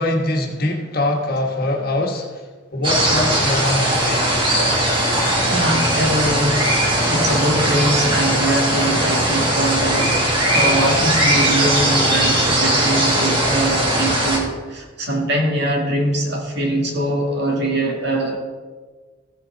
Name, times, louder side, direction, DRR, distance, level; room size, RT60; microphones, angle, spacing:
voice 1, 0.0-2.3 2.7-4.2, left 1 dB, 50° left, 2 dB, 1.4 m, -22 dB
sound 1, 2.8-14.4, right 1 dB, 25° right, 1.7 m, -19 dB
voice 2, 5.5-6.7 7.0-18.4, right 1 dB, 60° right, 0 dB, 2.2 m, -22 dB
15.0 x 6.9 x 4.0 m, 1.4 s
head